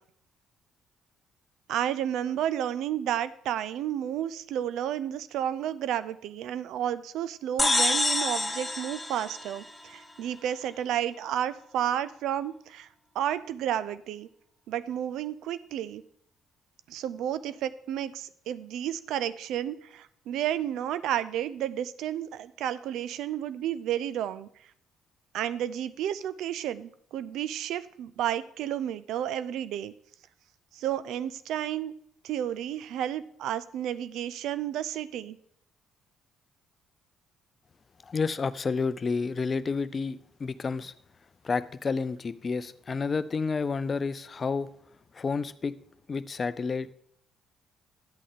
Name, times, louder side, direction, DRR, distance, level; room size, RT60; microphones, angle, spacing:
voice 1, 1.7-12.9 13.1-14.3 14.7-16.0 16.9-24.5 25.3-29.9 30.7-31.9 32.2-35.4, right 11 dB, 65° right, 15 dB, 0.4 m, -31 dB
sound 1, 7.6-10.2, left 2 dB, 15° left, 1.0 m, -27 dB
voice 2, 38.1-40.9 41.4-44.7 45.1-45.8 46.1-46.9, left 4 dB, 40° left, 15 dB, 0.5 m, -30 dB
11.5 x 8.4 x 3.6 m, 0.69 s
hypercardioid pair, 50°, 0 cm